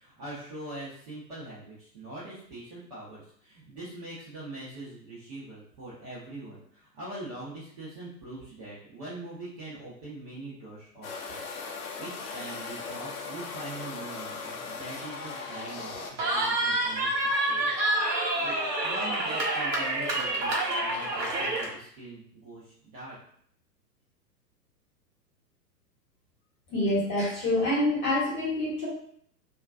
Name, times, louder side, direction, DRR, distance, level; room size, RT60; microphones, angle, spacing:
voice 1, 0.0-18.0 18.3-18.6 18.8-23.2, right 2 dB, 25° right, -9 dB, 0.5 m, -43 dB
sound 1, 11.0-16.1, left 4 dB, 55° left, 0.5 m, -38 dB
Cheering, 16.2-21.7, right 1 dB, 75° right, 0.9 m, -27 dB
voice 2, 26.7-28.9, left 1 dB, 25° left, -7 dB, 1.0 m, -26 dB
2.3 x 2.2 x 2.4 m, 0.64 s
figure-of-eight pair, 105°, 50 cm